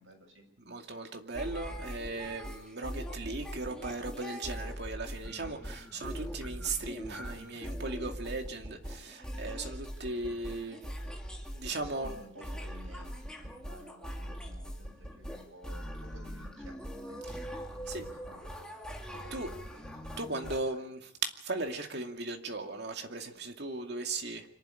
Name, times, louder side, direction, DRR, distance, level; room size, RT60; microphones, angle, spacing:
voice 1, 0.0-0.5 10.1-10.3 11.7-16.8 17.1-17.4 17.7-18.8 19.1-20.9, equal, 65° right, 2 dB, 7.5 m, -55 dB
voice 2, 0.7-10.8 11.5-12.1 17.9-18.1 19.3-19.5 20.2-24.5, right 3 dB, 50° right, 3 dB, 2.5 m, -37 dB
sound 1, 1.3-20.6, equal, 5° left, 2.6 m, -42 dB
25.0 x 11.5 x 9.9 m, 0.75 s
head